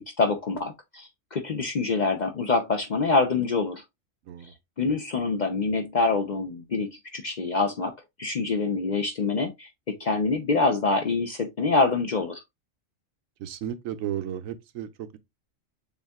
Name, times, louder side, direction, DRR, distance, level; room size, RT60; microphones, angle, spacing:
voice 1, 0.2-3.8 4.8-7.9 8.2-9.7 10.0-12.4, left 3 dB, 50° left, 0.5 m, -25 dB
voice 2, 13.4-15.2, right 10 dB, 90° right, 1.0 m, -34 dB
7.0 x 2.7 x 2.2 m
omnidirectional pair, 1.3 m